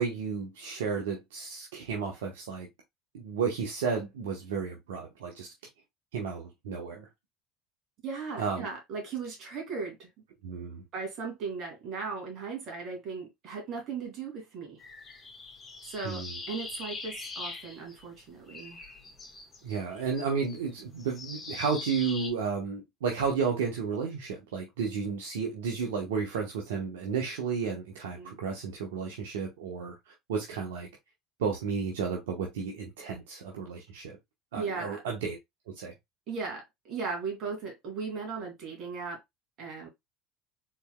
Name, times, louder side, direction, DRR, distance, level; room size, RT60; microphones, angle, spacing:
voice 1, 0.0-2.7 3.1-5.5 6.1-7.1 8.4-8.7 10.4-10.8 16.0-16.3 19.6-30.9 31.4-34.2 34.5-35.4 35.7-35.9, right 6 dB, 85° right, 1.0 m, -32 dB
voice 2, 8.0-10.1 10.9-14.8 15.8-18.8 28.2-28.4 34.5-35.0 36.3-39.2 39.6-39.9, right 5 dB, 55° right, 2.5 m, -37 dB
sound 1, 14.8-18.2 18.5-22.3, left 3 dB, 25° left, 2.0 m, -42 dB
4.5 x 4.1 x 2.2 m
hypercardioid pair, 80°, 0 cm